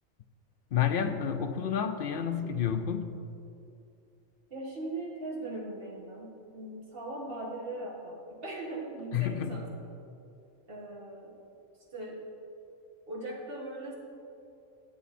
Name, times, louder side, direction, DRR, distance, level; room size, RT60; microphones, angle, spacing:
voice 1, 0.7-3.1 9.1-9.6, left 8 dB, 60° left, 8 dB, 0.6 m, -30 dB
voice 2, 4.5-9.7 10.7-11.4 11.9-12.2 13.1-14.0, right 2 dB, 45° right, -3 dB, 1.9 m, -39 dB
11.5 x 8.1 x 4.2 m, 2.6 s
omnidirectional pair, 1.4 m